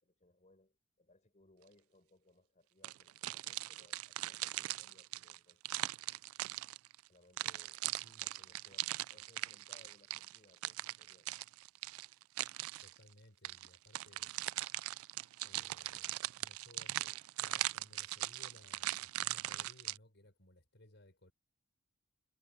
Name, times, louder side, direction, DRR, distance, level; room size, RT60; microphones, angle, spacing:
voice 1, 0.0-6.0 7.1-7.8 8.2-11.3, left 2 dB, 35° left, 5.2 m, -67 dB
sound 1, 2.8-7.0 7.4-13.0 13.4-20.0, right 16 dB, 80° right, 0.3 m, -40 dB
voice 2, 12.8-14.3 15.4-16.1 16.4-21.3, left 1 dB, 55° left, 6.6 m, -62 dB
head